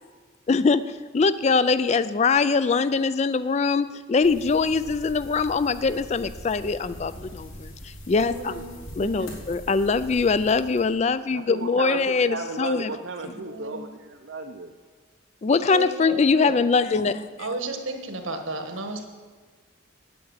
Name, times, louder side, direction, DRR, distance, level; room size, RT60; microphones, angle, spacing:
voice 1, 0.5-8.6 9.0-12.9 15.4-17.2, left 4 dB, 35° left, 14 dB, 0.3 m, -23 dB
sound 1, 4.2-10.9, equal, 85° left, 3.1 m, -42 dB
voice 2, 8.1-8.7 9.0-9.3 13.3-13.9 15.7-16.6 16.9-19.1, right 2 dB, 75° right, 5 dB, 1.4 m, -34 dB
voice 3, 11.3-14.7, right 3 dB, 60° right, 4 dB, 0.6 m, -34 dB
8.7 x 8.6 x 8.1 m, 1.5 s
head